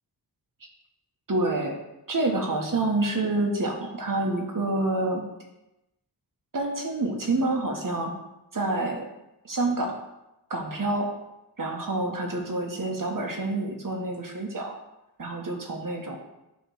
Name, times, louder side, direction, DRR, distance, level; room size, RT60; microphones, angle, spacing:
voice 1, 1.3-1.7 2.1-5.2 6.5-8.1 8.5-9.0 9.4-9.9 10.5-11.1 11.6-14.7 15.2-16.2, right 2 dB, 50° right, 1 dB, 1.4 m, -27 dB
8.4 x 3.5 x 6.3 m, 0.92 s
wide cardioid pair, 85°, 42 cm